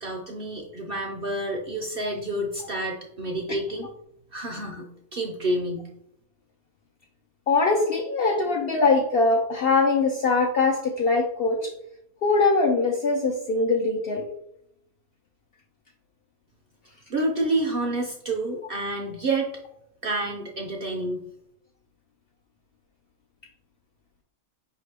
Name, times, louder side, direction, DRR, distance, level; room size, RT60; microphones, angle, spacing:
voice 1, 0.0-3.9 4.3-5.9 17.1-19.5 20.0-21.2, right 2 dB, 60° right, 0 dB, 0.6 m, -29 dB
voice 2, 7.5-11.7 12.2-14.2, left 3 dB, 65° left, 1 dB, 0.6 m, -22 dB
5.0 x 2.8 x 3.3 m, 0.74 s
omnidirectional pair, 1.5 m